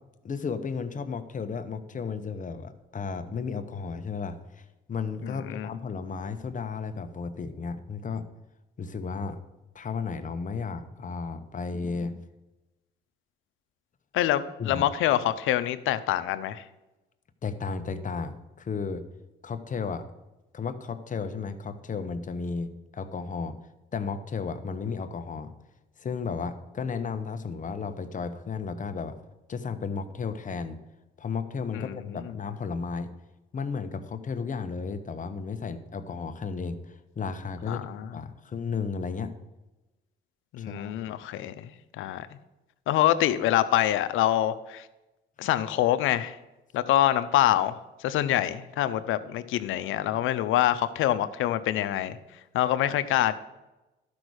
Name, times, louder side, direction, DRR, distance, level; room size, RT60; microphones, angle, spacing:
voice 1, 0.2-8.3 8.8-9.4 9.7-12.2 14.6-14.8 17.4-19.0 19.4-20.0 20.5-23.6 23.9-25.5 26.0-29.2 29.5-30.8 31.2-33.1 33.5-37.8 38.1-39.3 40.6-40.9, left 5 dB, 40° left, 9 dB, 1.0 m, -33 dB
voice 2, 5.2-5.7 14.1-16.6 31.7-32.3 37.7-38.1 40.5-41.7 42.0-42.3 42.9-44.9 45.4-46.4 46.7-52.2 52.5-53.3, left 12 dB, 90° left, 12 dB, 0.7 m, -25 dB
12.0 x 5.3 x 6.3 m, 1.0 s
cardioid pair, 90°, 20 cm